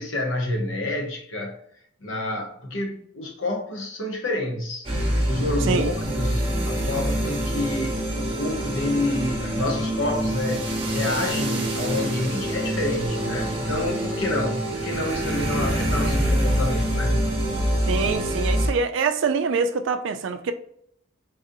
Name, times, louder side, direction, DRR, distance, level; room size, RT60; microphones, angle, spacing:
voice 1, 0.0-1.6 2.0-4.9 5.3-17.2, left 1 dB, 80° left, 0.9 m, -28 dB
sound 1, 4.8-18.7, right 1 dB, 30° right, 0.8 m, -25 dB
voice 2, 17.9-20.5, right 5 dB, 70° right, 0.4 m, -24 dB
4.0 x 2.5 x 2.6 m
head